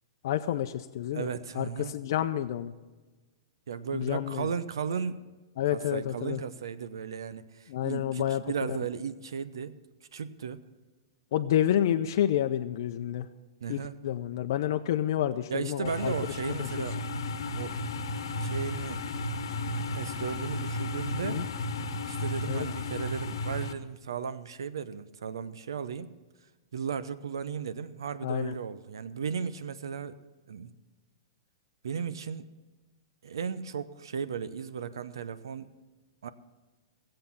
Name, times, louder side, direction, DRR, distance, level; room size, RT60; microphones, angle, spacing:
voice 1, 0.2-1.3 1.5-2.7 3.9-4.5 5.6-6.4 7.7-8.4 11.3-13.3 13.7-16.7 21.2-21.5 22.5-22.7 28.2-28.5, left 11 dB, 65° left, 6 dB, 0.6 m, -29 dB
voice 2, 1.1-1.9 3.7-5.3 5.7-9.8 10.1-10.6 13.6-13.9 15.5-17.0 17.5-17.8 18.4-19.0 19.9-21.4 22.1-26.1 26.7-30.2 30.5-30.7 31.8-32.5 33.2-35.7 36.2-36.3, right 6 dB, 90° right, 14 dB, 0.8 m, -35 dB
sound 1, 15.8-23.7, left 2 dB, 85° left, 1.1 m, -34 dB
16.0 x 7.7 x 7.1 m, 1.2 s
hypercardioid pair, 140°, 2 cm